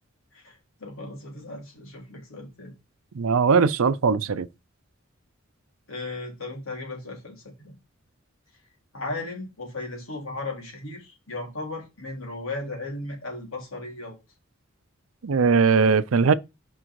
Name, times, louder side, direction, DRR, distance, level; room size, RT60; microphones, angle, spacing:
voice 1, 0.3-2.7 5.9-7.8 8.9-14.2, left 2 dB, 75° left, 3.4 m, -36 dB
voice 2, 3.1-4.5 15.2-16.3, right 5 dB, 80° right, 0.5 m, -20 dB
6.2 x 5.4 x 4.6 m
head